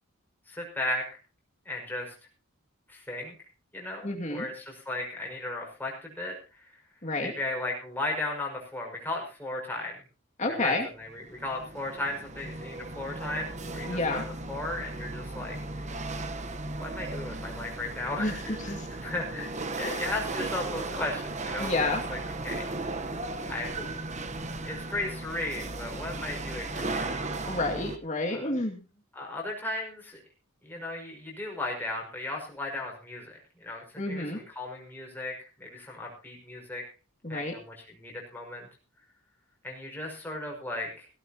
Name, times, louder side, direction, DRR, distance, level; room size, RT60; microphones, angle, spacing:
voice 1, 0.5-1.1 1.7-2.1 2.9-3.3 3.7-6.6 7.2-10.0 10.5-15.9 16.8-18.7 19.0-19.5 19.8-22.2 22.4-22.7 23.5-24.0 24.6-27.5 28.3-28.5 29.1-30.2 30.6-36.8 37.3-38.7 39.6-41.1, left 2 dB, 10° left, -1 dB, 5.7 m, -36 dB
voice 2, 4.0-4.5 7.0-7.3 10.4-10.9 13.9-14.2 18.2-18.9 19.8-20.0 21.6-22.0 23.8-23.9 27.5-28.8 34.0-34.4 37.2-37.6, left 2 dB, 35° left, 2 dB, 2.3 m, -30 dB
Chatter / Hiss / Rattle, 11.1-28.0, right 2 dB, 30° right, 1.0 m, -36 dB
17.0 x 17.0 x 2.9 m, 0.33 s
head